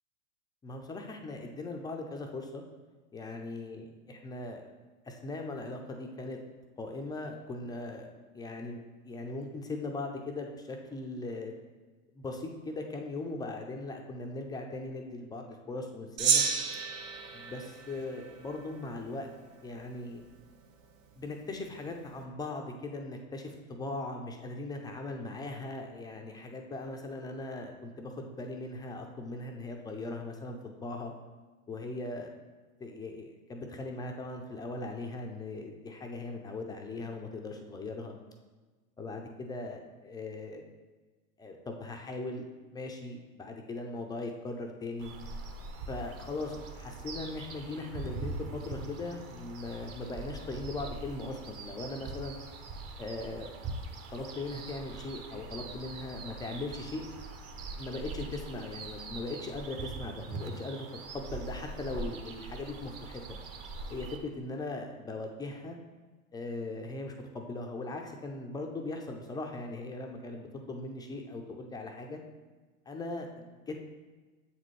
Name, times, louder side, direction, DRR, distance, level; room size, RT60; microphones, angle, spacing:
voice 1, 0.6-2.6 3.1-4.7 5.1-6.4 6.8-8.1 8.3-11.5 12.1-16.5 17.3-19.3 19.6-20.2 21.2-31.1 31.7-32.3 32.8-38.2 39.0-40.6 41.4-42.5 42.7-45.1 45.9-52.4 53.0-53.5 54.1-57.0 57.8-60.9 61.1-63.4 63.9-65.8 66.3-72.2 72.9-73.7, left 2 dB, 10° left, 2 dB, 0.3 m, -39 dB
Gong, 16.2-18.8, right 6 dB, 70° right, 1.1 m, -31 dB
sound 1, 45.0-64.2, right 3 dB, 35° right, 0.8 m, -42 dB
7.3 x 4.2 x 3.1 m, 1.3 s
hypercardioid pair, 105°, 41 cm